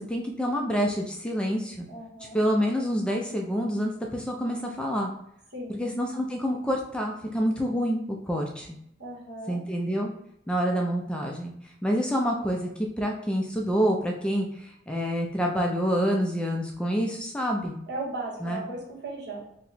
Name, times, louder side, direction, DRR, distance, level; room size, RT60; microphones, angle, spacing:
voice 1, 0.0-1.9 2.3-5.1 5.8-8.7 9.5-10.1 10.5-11.5 11.8-12.7 13.0-17.8 18.4-18.6, equal, 5° left, 0 dB, 0.3 m, -27 dB
voice 2, 1.9-2.4 5.5-5.8 9.0-9.6 17.9-19.4, right 2 dB, 65° right, -4 dB, 1.4 m, -36 dB
2.8 x 2.2 x 4.0 m, 0.77 s
head